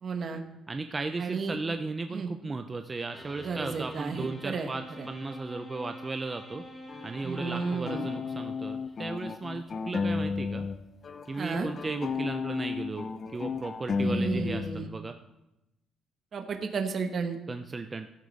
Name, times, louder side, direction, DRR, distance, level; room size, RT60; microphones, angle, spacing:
voice 1, 0.0-0.4 1.2-1.6 2.1-2.3 3.4-4.7 5.0-5.1 7.2-8.1 11.4-11.7 14.0-14.9 16.3-17.4, right 5 dB, 40° right, 5 dB, 1.0 m, -33 dB
voice 2, 0.7-6.6 7.0-10.7 11.3-13.1 13.3-15.1 17.5-18.1, right 3 dB, 20° right, 7 dB, 0.5 m, -36 dB
sound 1, 3.1-8.9, equal, 10° left, 1.3 m, -46 dB
sound 2, 6.9-10.8 11.0-14.9, left 5 dB, 30° left, 0.5 m, -33 dB
15.5 x 8.2 x 4.0 m, 0.92 s
cardioid pair, 150°, 0 cm